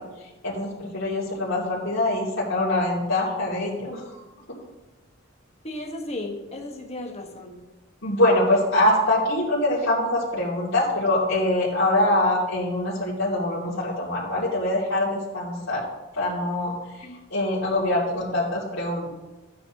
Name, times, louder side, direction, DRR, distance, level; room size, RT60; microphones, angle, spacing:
voice 1, 0.0-4.2 4.5-4.6 8.0-15.8 16.1-19.1, left 1 dB, 85° left, -8 dB, 2.8 m, -24 dB
voice 2, 5.6-7.6 17.0-17.2, left 1 dB, 30° left, 1 dB, 1.6 m, -35 dB
13.5 x 9.4 x 3.1 m, 1.2 s
head